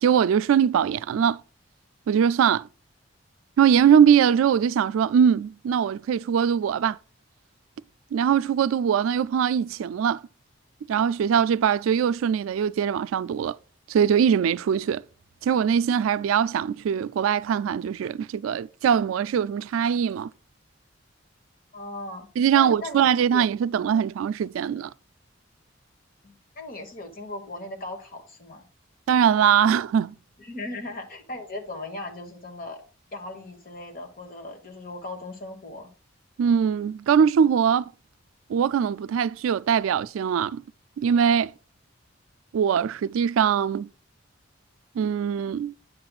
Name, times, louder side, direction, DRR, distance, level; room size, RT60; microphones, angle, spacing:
voice 1, 0.0-1.4 2.1-2.7 3.6-7.0 8.1-10.2 10.9-13.6 13.9-15.0 15.4-20.3 22.4-24.9 29.1-30.1 36.4-37.9 38.5-40.6 41.0-41.5 42.5-43.9 45.0-45.7, right 8 dB, 85° right, 0.3 m, -22 dB
voice 2, 21.7-22.3 22.5-23.1 23.3-23.5 23.9-24.1 26.2-28.7 30.4-32.8 33.1-35.9, left 2 dB, 45° left, 1.3 m, -38 dB
9.5 x 7.6 x 2.3 m
head